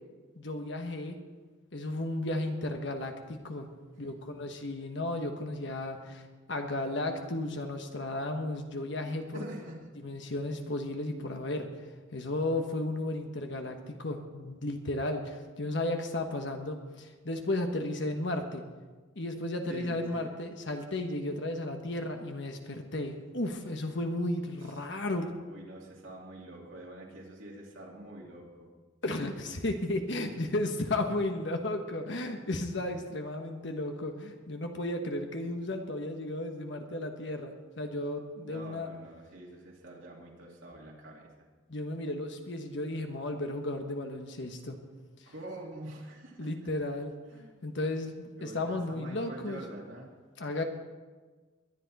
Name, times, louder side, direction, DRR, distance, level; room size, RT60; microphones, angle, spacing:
voice 1, 0.4-1.2 1.7-3.7 4.0-9.4 10.0-11.7 12.1-18.6 19.1-25.3 29.0-38.9 41.7-44.8 46.4-47.1 47.6-49.6 50.4-50.6, left 1 dB, 60° left, 4 dB, 1.3 m, -34 dB
voice 2, 9.3-9.8 19.7-20.3 24.6-24.7 25.5-28.7 38.4-41.3 45.3-46.5 47.3-47.6 48.4-50.1, right 1 dB, 70° right, -3 dB, 2.7 m, -45 dB
22.0 x 10.5 x 4.2 m, 1.4 s
head